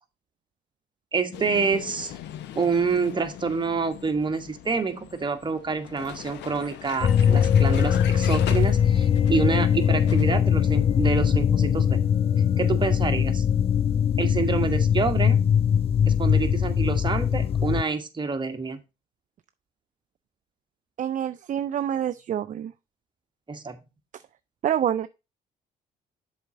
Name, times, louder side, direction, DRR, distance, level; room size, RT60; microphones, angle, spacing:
voice 1, 1.1-2.2 2.5-12.0 12.6-13.4 14.2-15.4 16.1-18.8 23.5-23.8, right 4 dB, 25° right, 1.3 m, -27 dB
Vehicle, 1.3-10.4, left 11 dB, 70° left, 0.8 m, -40 dB
sound 1, 7.0-17.8, left 8 dB, 30° left, 0.4 m, -21 dB
voice 2, 21.0-22.7 24.1-24.2 24.6-25.1, right 10 dB, 45° right, 0.4 m, -27 dB
7.0 x 4.3 x 4.9 m
supercardioid pair, 65°, 19 cm